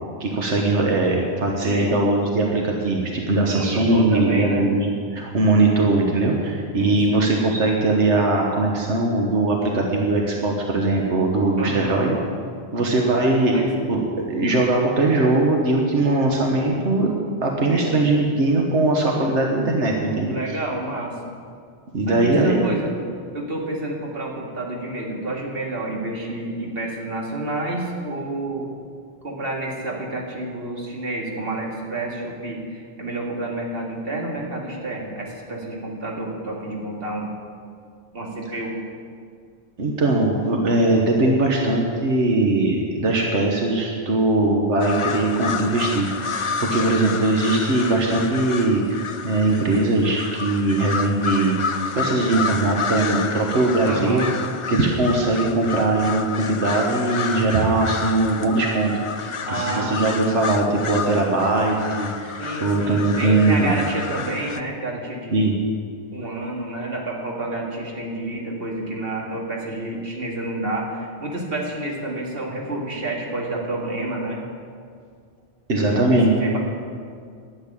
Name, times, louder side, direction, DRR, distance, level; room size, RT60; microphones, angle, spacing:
voice 1, 0.2-12.2 12.7-13.6 13.9-17.1 17.4-20.3 21.9-22.6 39.8-51.5 51.9-54.3 54.7-63.7 65.3-65.5 75.7-76.3, right 2 dB, 85° right, 0 dB, 1.5 m, -20 dB
voice 2, 1.6-2.0 3.5-4.7 6.8-7.3 11.5-12.0 13.5-13.7 17.6-18.0 20.2-21.3 22.1-22.9 23.3-28.7 29.2-37.3 38.1-38.8 53.8-54.3 59.5-60.0 62.4-65.5 66.1-74.4 75.7-76.6, right 1 dB, 55° right, -2 dB, 2.3 m, -29 dB
sound 1, 44.8-64.6, left 5 dB, 50° left, 0.4 m, -30 dB
12.0 x 8.1 x 8.8 m, 2.2 s
omnidirectional pair, 1.2 m